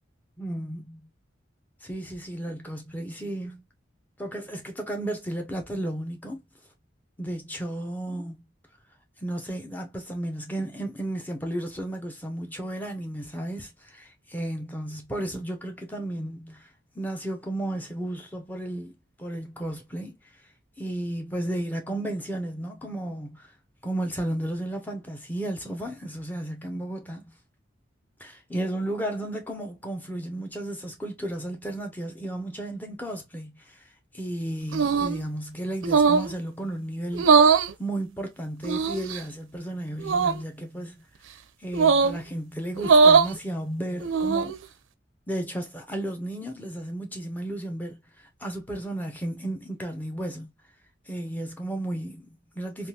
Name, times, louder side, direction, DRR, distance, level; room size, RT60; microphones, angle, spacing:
voice 1, 0.4-1.0 1.8-3.6 4.2-6.4 7.2-8.5 9.2-16.7 16.9-18.9 19.2-20.2 20.8-23.5 23.8-27.3 28.2-41.0 41.6-44.6 45.3-50.5 51.1-52.9, right 1 dB, 10° left, 0.6 m, -33 dB
sound 1, 34.7-35.2 35.8-36.3 37.1-37.7 38.6-39.2 40.0-40.4 41.7-42.2 42.8-43.3 44.0-44.6, right 5 dB, 90° right, 0.4 m, -20 dB
3.5 x 2.3 x 2.8 m
head